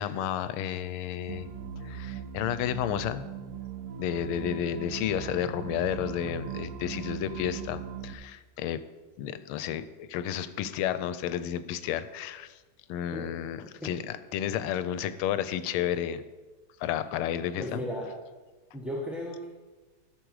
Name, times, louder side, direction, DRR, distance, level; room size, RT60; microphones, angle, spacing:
voice 1, 0.0-1.5 1.8-3.3 4.0-8.8 9.2-12.6 12.9-16.2 16.8-17.8, left 10 dB, 90° left, 13 dB, 1.5 m, -31 dB
sound 1, 1.3-8.1, right 7 dB, 90° right, 1.6 m, -39 dB
voice 2, 17.6-18.1 18.7-19.5, left 1 dB, ahead, -4 dB, 0.9 m, -35 dB
14.0 x 6.6 x 4.8 m, 1.2 s
omnidirectional pair, 2.3 m